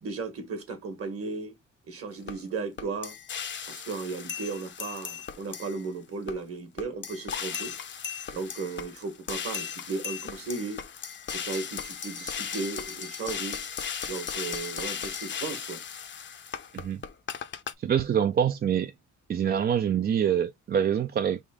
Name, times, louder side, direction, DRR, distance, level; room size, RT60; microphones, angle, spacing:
voice 1, 0.0-1.6 1.9-3.1 3.7-7.7 8.3-10.9 11.3-13.6 14.0-15.8, right 4 dB, 50° right, 1.4 m, -35 dB
sound 1, 2.3-2.4 2.8-5.9 6.3-6.4 6.8-17.7, left 7 dB, 40° left, 0.6 m, -36 dB
voice 2, 17.8-18.9 19.3-21.4, right 8 dB, 35° right, 0.4 m, -25 dB
3.6 x 2.6 x 3.6 m
cardioid pair, 90°, 30 cm